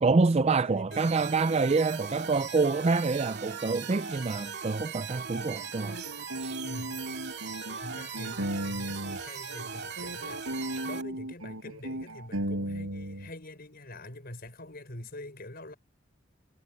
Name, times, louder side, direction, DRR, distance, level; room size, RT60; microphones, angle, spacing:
voice 1, 0.0-6.0 6.4-6.6, right 4 dB, 30° right, 0.4 m, -26 dB
voice 2, 0.6-1.3 6.6-7.0 7.8-15.7, left 1 dB, 45° left, 5.7 m, -45 dB
sound 1, 0.9-11.0, right 6 dB, 50° right, 2.7 m, -39 dB
sound 2, 5.3-9.2 9.5-13.3, right 1 dB, 75° right, 6.2 m, -36 dB
head